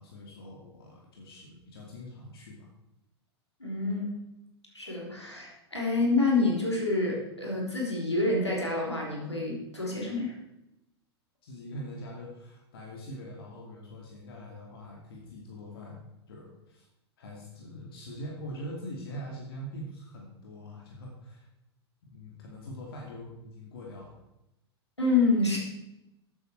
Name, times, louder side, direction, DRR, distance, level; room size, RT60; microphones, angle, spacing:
voice 1, 0.0-2.7 11.4-16.9 17.2-21.5 22.0-24.2, equal, 60° left, -1 dB, 2.6 m, -43 dB
voice 2, 3.6-4.1 4.7-10.3 25.0-25.6, left 3 dB, 85° left, -2 dB, 3.7 m, -27 dB
14.0 x 8.8 x 4.7 m, 0.90 s
figure-of-eight pair, 95°, 14 cm